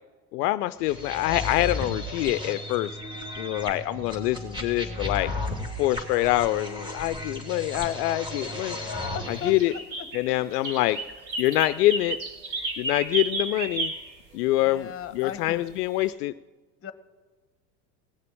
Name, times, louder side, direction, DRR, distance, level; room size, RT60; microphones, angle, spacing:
voice 1, 0.3-3.0 3.4-5.3 5.8-8.8 9.3-9.7 10.1-11.0 11.4-12.2 12.8-13.9 14.3-16.3, left 16 dB, 70° left, 14 dB, 0.5 m, -25 dB
sound 1, 0.9-9.7, left 2 dB, 10° right, 2.9 m, -34 dB
voice 2, 8.6-10.1 14.7-15.6 16.8-16.9, left 8 dB, 25° left, 12 dB, 1.2 m, -37 dB
sound 2, 9.3-14.1 15.9-16.0, right 3 dB, 85° right, 2.4 m, -32 dB
18.5 x 6.7 x 8.8 m, 1.3 s
hypercardioid pair, 85°, 49 cm